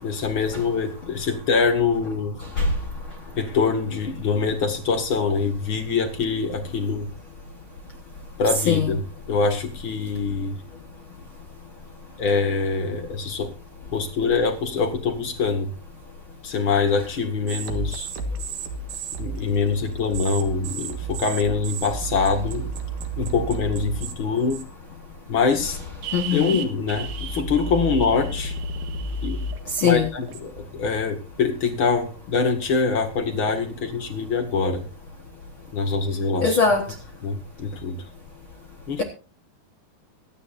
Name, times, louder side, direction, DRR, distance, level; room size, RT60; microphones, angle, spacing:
voice 1, 0.0-2.4 3.4-7.1 8.4-10.6 12.2-13.5 13.9-15.7 16.4-18.1 19.2-22.7 23.2-24.6 25.3-25.8 26.3-28.5 29.2-29.4 29.8-34.8 35.7-36.6 37.2-38.0 38.9-39.0, left 4 dB, 40° left, 2.0 m, -24 dB
sound 1, 17.5-24.1 24.5-24.9 25.5-25.6 26.0-30.6, right 3 dB, 60° right, 2.7 m, -32 dB
voice 2, 26.1-26.6 29.8-30.1 36.4-36.8, left 6 dB, 75° left, 1.1 m, -20 dB
24.0 x 9.5 x 2.6 m
omnidirectional pair, 4.5 m